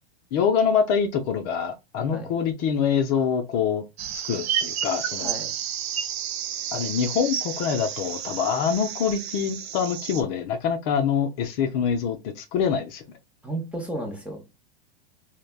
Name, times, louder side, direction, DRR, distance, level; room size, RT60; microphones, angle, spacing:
voice 1, 0.3-3.8 4.1-5.3 6.7-13.0, left 7 dB, 40° left, 0.6 m, -25 dB
sound 1, 4.0-10.2, right 9 dB, 75° right, 0.6 m, -31 dB
voice 2, 5.2-5.5 13.4-14.7, right 1 dB, 5° right, 0.7 m, -33 dB
3.2 x 2.2 x 2.2 m
hypercardioid pair, 125°, 31 cm